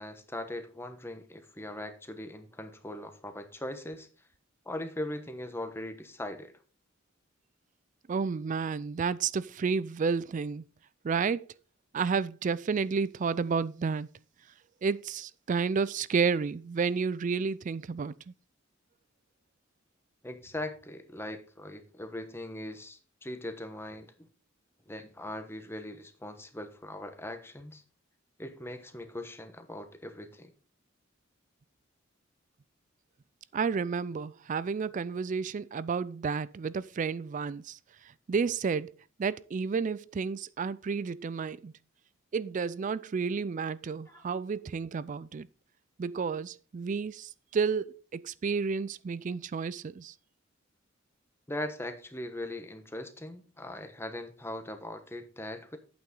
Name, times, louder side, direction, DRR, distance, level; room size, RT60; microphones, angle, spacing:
voice 1, 0.0-4.1 4.6-6.5 20.2-24.3 24.9-27.8 28.4-30.5 44.1-44.2 51.5-55.8, left 1 dB, 10° left, 1.1 m, -40 dB
voice 2, 8.1-10.6 11.0-11.4 11.9-14.1 14.8-18.1 33.5-37.8 38.3-38.9 39.2-41.7 42.3-45.5 46.0-50.1, right 5 dB, 40° right, 0.3 m, -31 dB
8.9 x 8.5 x 3.8 m
head